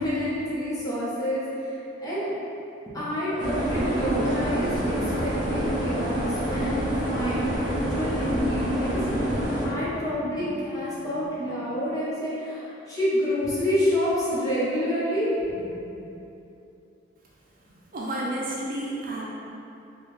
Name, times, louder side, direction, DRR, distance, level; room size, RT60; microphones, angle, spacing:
voice 1, 0.0-2.3 2.9-4.9 5.2-6.8 7.1-9.0 9.6-15.3 15.6-16.0, equal, 20° left, -10 dB, 1.0 m, -28 dB
sound 1, 3.4-9.7, equal, 25° right, 1.0 m, -27 dB
voice 2, 17.9-19.2, right 1 dB, 50° right, -5 dB, 0.6 m, -30 dB
4.6 x 2.3 x 3.2 m, 2.8 s
head